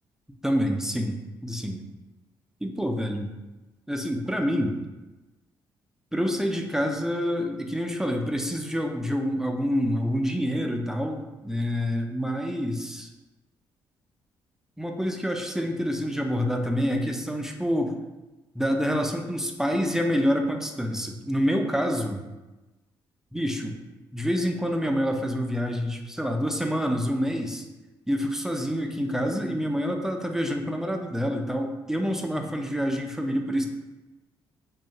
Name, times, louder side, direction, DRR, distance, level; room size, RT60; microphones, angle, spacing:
voice 1, 0.4-1.2 1.4-1.8 2.6-3.3 3.9-4.8 6.1-13.1 14.8-18.0 18.6-22.2 23.3-23.8 24.1-27.7 28.1-33.7, equal, 5° right, 3 dB, 0.3 m, -27 dB
2.2 x 2.2 x 2.7 m, 1.1 s
hypercardioid pair, 45°, 11 cm